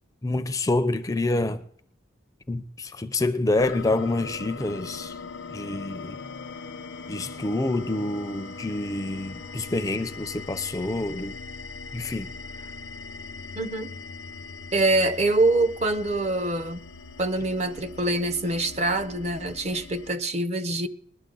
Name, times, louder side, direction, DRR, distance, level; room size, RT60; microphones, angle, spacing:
voice 1, 0.2-1.6 2.5-5.2 5.5-6.2 7.1-11.4 11.9-12.3, left 2 dB, 20° left, 0.4 m, -27 dB
sound 1, 3.6-20.1, left 4 dB, 90° left, 0.7 m, -40 dB
voice 2, 13.6-13.9 14.7-16.8 17.2-20.9, right 2 dB, 35° right, 0.7 m, -25 dB
20.5 x 11.5 x 3.8 m
head